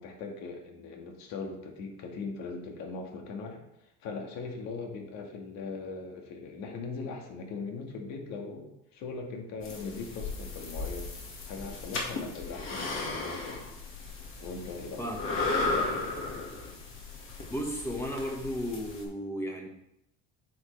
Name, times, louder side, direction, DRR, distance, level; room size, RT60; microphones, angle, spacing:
voice 1, 0.0-3.6 4.0-11.1 11.4-13.6 14.4-16.5, left 4 dB, 70° left, 2 dB, 1.8 m, -40 dB
sound 1, 9.6-19.0, left 3 dB, 45° left, 2.0 m, -35 dB
voice 2, 17.5-19.7, equal, 10° left, 1 dB, 1.6 m, -34 dB
9.5 x 6.3 x 3.4 m, 0.82 s
cardioid pair, 135°, 29 cm